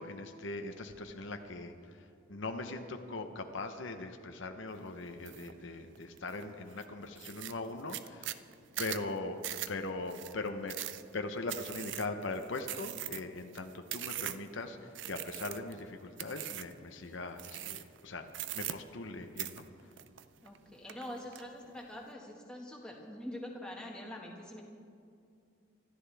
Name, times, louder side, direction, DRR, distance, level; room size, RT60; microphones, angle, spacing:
voice 1, 0.0-2.0 2.3-8.4 8.8-9.4 9.7-10.8 11.1-18.3 18.5-19.6, left 2 dB, 70° left, 5 dB, 0.9 m, -40 dB
sound 1, 5.2-5.5 5.9-6.4 6.8-6.9 7.2-14.5 14.9-15.8 16.2-16.8 17.4-18.0 18.3-19.1 19.4-20.6 20.9-21.4, right 13 dB, 65° right, 0.5 m, -41 dB
voice 2, 20.4-24.6, left 1 dB, 5° left, -2 dB, 1.7 m, -44 dB
25.0 x 13.5 x 3.5 m, 2.4 s
head